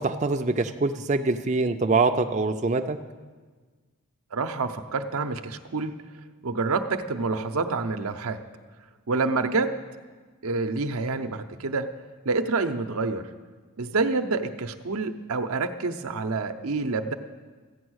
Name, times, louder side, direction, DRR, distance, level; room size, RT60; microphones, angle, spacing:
voice 1, 0.0-3.0, right 3 dB, 35° right, 6 dB, 0.4 m, -24 dB
voice 2, 4.3-5.9 6.4-8.4 9.1-9.7 10.4-11.9 12.2-13.3 13.8-17.1, right 3 dB, 85° right, 8 dB, 0.7 m, -27 dB
14.5 x 8.7 x 6.3 m, 1.4 s
head